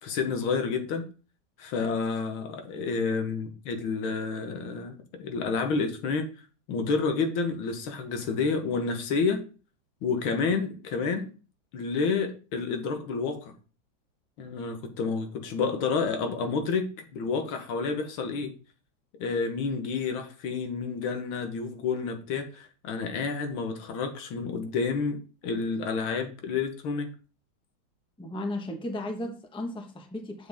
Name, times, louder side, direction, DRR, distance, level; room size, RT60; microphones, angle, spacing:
voice 1, 0.0-1.0 1.6-6.3 6.7-9.4 10.0-11.3 11.7-13.5 14.4-18.6 19.2-27.1, left 4 dB, 85° left, 6 dB, 1.9 m, -29 dB
voice 2, 28.2-30.5, left 1 dB, 5° left, 3 dB, 0.8 m, -35 dB
7.7 x 7.4 x 3.5 m, 0.36 s
omnidirectional pair, 2.2 m